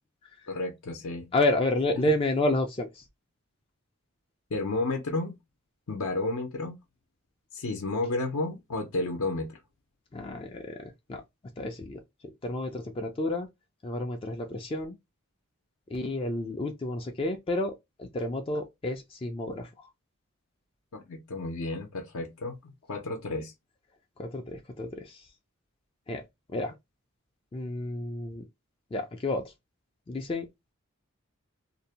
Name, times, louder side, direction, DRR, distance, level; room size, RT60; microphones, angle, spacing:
voice 1, 0.5-1.2 4.5-5.3 5.9-6.8 7.5-9.6 20.9-23.5, left 2 dB, 75° left, 0.6 m, -32 dB
voice 2, 1.3-3.0 10.1-11.2 11.6-12.0 12.4-13.5 13.8-15.0 15.9-19.9 24.2-25.3 26.1-26.2 26.5-26.7 27.5-28.4 28.9-29.5 30.1-30.5, left 1 dB, 25° left, 0.3 m, -30 dB
2.6 x 2.0 x 2.7 m
head